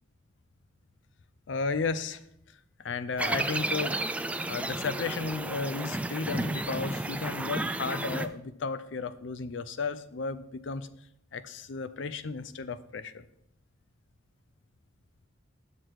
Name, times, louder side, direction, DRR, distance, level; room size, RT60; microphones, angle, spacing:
voice 1, 1.5-2.2 2.8-4.0 4.5-10.9 11.3-13.2, left 4 dB, 65° left, 13 dB, 0.5 m, -34 dB
sound 1, 3.2-8.3, right 2 dB, 5° right, 0.3 m, -32 dB
7.6 x 6.6 x 4.7 m, 0.75 s
head